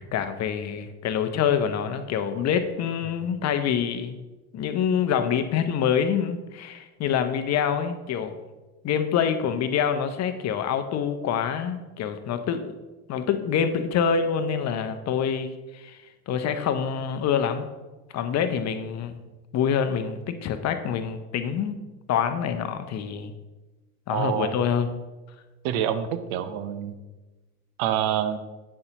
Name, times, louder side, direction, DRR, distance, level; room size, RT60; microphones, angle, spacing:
voice 1, 0.1-4.2 4.5-8.3 8.8-12.8 13.1-16.0 16.3-17.7 18.1-19.2 19.5-21.8 22.1-23.3 24.1-25.0, left 7 dB, 35° left, 9 dB, 0.7 m, -26 dB
voice 2, 24.1-24.6 25.6-26.9 27.8-28.4, right 10 dB, 60° right, 11 dB, 0.8 m, -27 dB
8.4 x 6.6 x 2.9 m, 1.1 s
hypercardioid pair, 80°, 45 cm